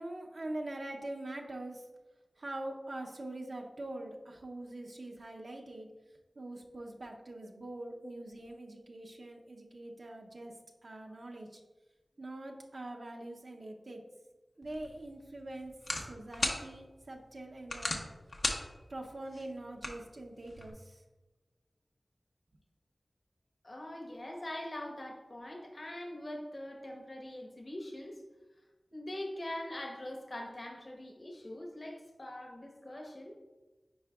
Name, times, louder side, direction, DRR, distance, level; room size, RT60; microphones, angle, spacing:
voice 1, 0.0-1.8 2.4-5.9 6.4-10.6 10.8-11.6 12.2-14.0 14.6-15.7 16.1-18.1 18.9-21.0, right 1 dB, 70° right, 0 dB, 0.7 m, -43 dB
sound 1, 14.6-20.7, left 2 dB, 75° left, 0.8 m, -39 dB
voice 2, 23.6-28.2 28.9-33.3, left 1 dB, 55° left, 0 dB, 1.1 m, -43 dB
9.5 x 4.5 x 2.4 m, 1.2 s
cardioid pair, 45°, 0 cm